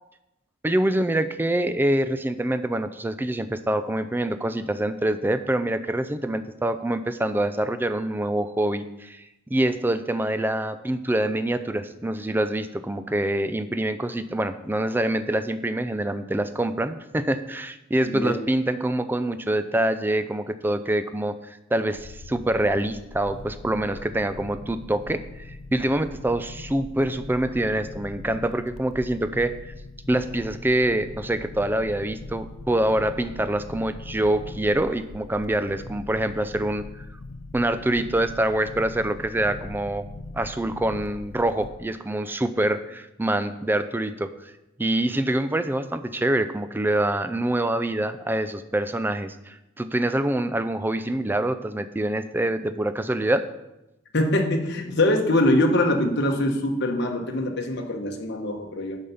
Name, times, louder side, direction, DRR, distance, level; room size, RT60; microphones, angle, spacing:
voice 1, 0.6-29.6 30.1-37.1 37.5-40.0 40.3-44.5 44.8-53.4, right 1 dB, 10° right, 11 dB, 0.4 m, -25 dB
sound 1, 21.9-41.7, left 2 dB, 75° left, 0.6 m, -41 dB
voice 2, 54.1-59.0, left 1 dB, 55° left, 3 dB, 1.2 m, -23 dB
8.4 x 5.5 x 5.7 m, 0.93 s
head